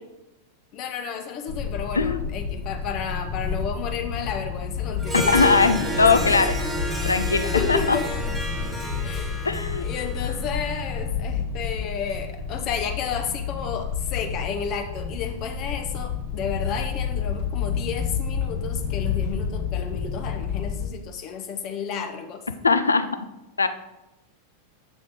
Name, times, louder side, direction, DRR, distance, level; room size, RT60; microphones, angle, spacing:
voice 1, 0.7-6.2 7.5-8.2 9.0-9.4 9.8-22.4, left 7 dB, 40° left, 6 dB, 0.7 m, -32 dB
sound 1, 1.5-20.9, left 6 dB, 55° left, 1.5 m, -30 dB
Harp, 5.0-10.7, right 1 dB, 10° right, 1.4 m, -31 dB
voice 2, 5.1-6.5 7.0-8.0 9.4-9.9 22.6-23.1 23.6-23.7, left 4 dB, 75° left, 12 dB, 0.4 m, -20 dB
7.2 x 6.4 x 3.5 m, 0.97 s
figure-of-eight pair, 90°, 0 cm